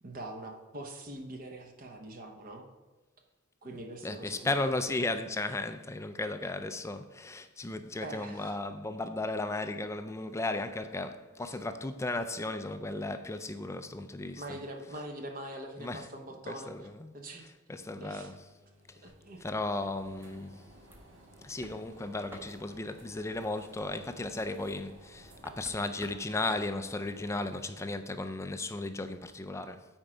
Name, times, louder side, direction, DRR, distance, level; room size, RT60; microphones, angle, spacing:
voice 1, 0.0-2.7 3.6-4.6 8.0-8.6 11.5-11.6 14.4-16.9 17.1-17.5 18.0-18.3 19.0-19.4, right 1 dB, 40° right, 1.0 m, -43 dB
voice 2, 4.0-14.4 15.8-16.1 16.5-17.1 17.7-18.4 19.4-20.6 21.4-29.8, left 2 dB, 15° left, 0.4 m, -35 dB
sound 1, 18.0-27.6, right 1 dB, 60° right, 1.5 m, -56 dB
sound 2, 19.0-27.0, right 1 dB, 10° right, 0.9 m, -56 dB
9.0 x 4.5 x 4.9 m
head